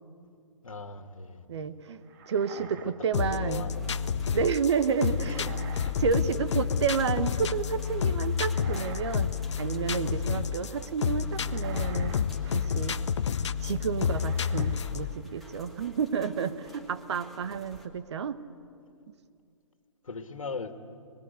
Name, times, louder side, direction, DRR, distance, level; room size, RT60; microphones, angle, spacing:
voice 1, 0.6-1.4 2.8-2.9 3.3-3.9 5.2-5.5 6.0-6.3 10.6-10.9 20.1-20.7, left 4 dB, 75° left, 1.9 m, -39 dB
voice 2, 1.5-2.0 2.3-3.7 4.3-5.4 6.0-12.2 12.4-13.0 13.6-18.4, right 6 dB, 55° right, 1.3 m, -30 dB
sound 1, 2.1-3.7 5.0-6.0 6.3-6.8 8.3-9.3 9.5-10.1 11.3-13.0 14.1-14.9 15.2-15.7, right 6 dB, 40° right, 1.9 m, -48 dB
sound 2, 3.1-15.1, left 7 dB, 60° left, 0.8 m, -29 dB
sound 3, 3.7-17.9, left 1 dB, ahead, 2.1 m, -51 dB
25.5 x 21.5 x 9.4 m
figure-of-eight pair, 130°, 17 cm